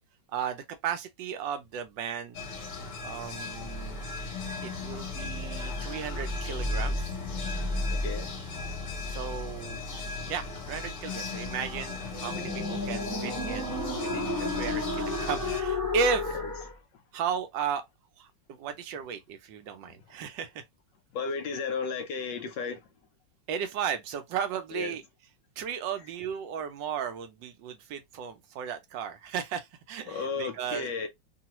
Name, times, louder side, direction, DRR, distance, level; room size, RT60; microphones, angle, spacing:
voice 1, 0.3-2.4 3.0-4.0 4.6-7.1 9.1-9.8 10.3-16.3 17.1-17.8 18.2-18.3 18.6-20.6 23.5-25.0 25.6-31.1, right 7 dB, 75° right, 1.2 m, -35 dB
sound 1, 2.3-15.6, left 3 dB, 50° left, 1.0 m, -38 dB
sound 2, 3.5-16.7, left 2 dB, 15° right, 0.8 m, -34 dB
voice 2, 7.9-8.4 21.1-22.9 24.7-25.0 30.1-31.1, left 5 dB, 75° left, 1.2 m, -34 dB
3.0 x 2.3 x 2.8 m
omnidirectional pair, 2.1 m